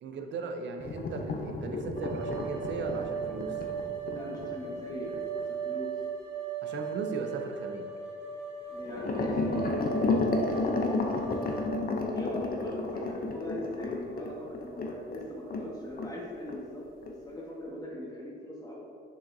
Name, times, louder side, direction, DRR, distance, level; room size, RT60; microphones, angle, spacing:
voice 1, 0.0-3.5 6.6-7.9, right 4 dB, 65° right, 5 dB, 0.7 m, -37 dB
sound 1, 0.8-5.5 8.8-15.7 16.0-16.2 16.5-16.6 17.0-17.1, left 3 dB, 45° left, 0.7 m, -32 dB
sound 2, 2.0-11.7, right 6 dB, 85° right, 1.1 m, -37 dB
voice 2, 4.1-5.1 5.5-5.9 8.7-11.1 12.1-18.8, left 1 dB, 20° left, -4 dB, 1.3 m, -40 dB
6.8 x 5.3 x 2.7 m, 2.4 s
cardioid pair, 90°, 20 cm